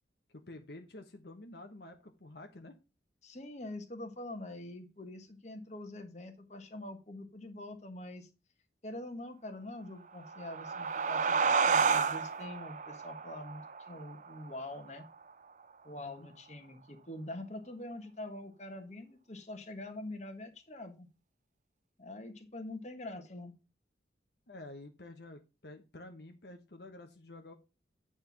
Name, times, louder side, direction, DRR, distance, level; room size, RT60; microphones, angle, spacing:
voice 1, 0.3-2.7 15.9-16.3 24.5-27.5, left 2 dB, 65° left, 4 dB, 1.0 m, -50 dB
voice 2, 3.2-8.3 8.8-15.0 15.8-21.1 22.0-23.5, left 1 dB, 40° left, 6 dB, 1.3 m, -44 dB
sound 1, 10.1-15.3, right 5 dB, 40° right, 0.5 m, -31 dB
9.0 x 4.5 x 5.8 m, 0.29 s
head